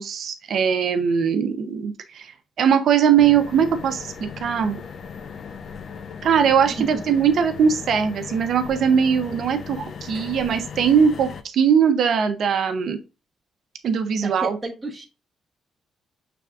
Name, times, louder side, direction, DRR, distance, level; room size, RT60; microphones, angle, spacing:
voice 1, 0.0-4.8 6.2-13.0 13.8-14.6, right 7 dB, 60° right, 8 dB, 0.6 m, -20 dB
sound 1, 3.2-11.4, left 6 dB, 50° left, 0.5 m, -37 dB
voice 2, 14.2-15.0, right 2 dB, 10° right, -2 dB, 1.0 m, -31 dB
6.0 x 3.4 x 2.4 m, 0.29 s
cardioid pair, 125°, 0 cm